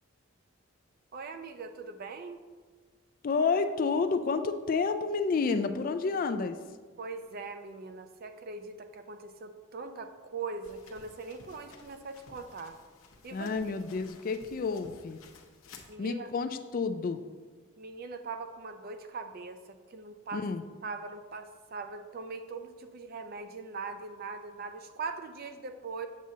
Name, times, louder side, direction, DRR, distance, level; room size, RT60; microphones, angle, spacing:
voice 1, 1.1-2.4 7.0-12.7 13.2-13.5 15.9-16.3 17.8-20.5 20.8-26.1, right 4 dB, 45° right, 8 dB, 0.4 m, -41 dB
voice 2, 3.2-6.6 13.3-15.2 16.0-17.2 20.3-20.6, left 4 dB, 40° left, 9 dB, 0.3 m, -30 dB
sound 1, 10.6-15.9, left 4 dB, 70° left, 0.8 m, -55 dB
7.4 x 7.3 x 2.8 m, 1.5 s
head